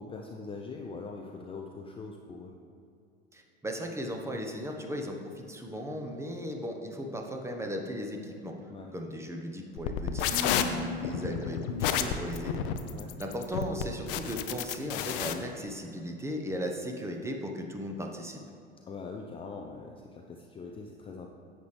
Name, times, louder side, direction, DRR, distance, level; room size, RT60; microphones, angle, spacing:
voice 1, 0.0-2.5 8.7-8.9 12.8-13.1 18.9-21.3, left 4 dB, 15° left, 2 dB, 0.6 m, -42 dB
voice 2, 3.3-8.6 8.9-12.6 13.2-18.4, equal, 10° right, 2 dB, 1.0 m, -36 dB
sound 1, 9.8-15.3, left 9 dB, 55° left, 0.7 m, -30 dB
10.5 x 8.0 x 3.3 m, 2.5 s
figure-of-eight pair, 75°, 32 cm